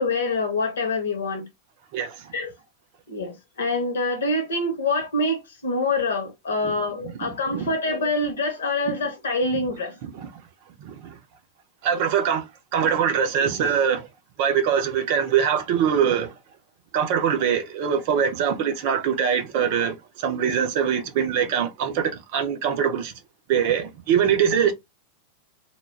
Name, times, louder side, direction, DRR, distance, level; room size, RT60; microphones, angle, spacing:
voice 1, 0.0-1.4 2.3-2.5 3.1-9.9, left 2 dB, 65° left, 1.0 m, -25 dB
voice 2, 1.9-2.3 7.0-7.7 10.0-10.3 10.8-11.2 11.8-14.1 14.4-16.3 16.9-23.1 23.5-24.7, right 8 dB, 50° right, 0.6 m, -23 dB
2.3 x 2.2 x 3.1 m
figure-of-eight pair, 90°, 0 cm